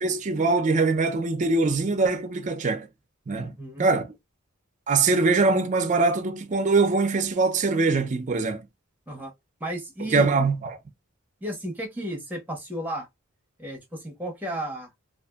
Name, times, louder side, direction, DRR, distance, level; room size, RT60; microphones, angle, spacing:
voice 1, 0.0-2.9 3.3-4.1 4.9-8.7 10.1-10.8, right 3 dB, 40° right, 0.5 m, -23 dB
voice 2, 3.4-3.9 9.1-9.3 9.6-10.5 11.4-13.1 13.6-14.9, right 1 dB, 10° right, 1.0 m, -34 dB
2.6 x 2.5 x 2.3 m
head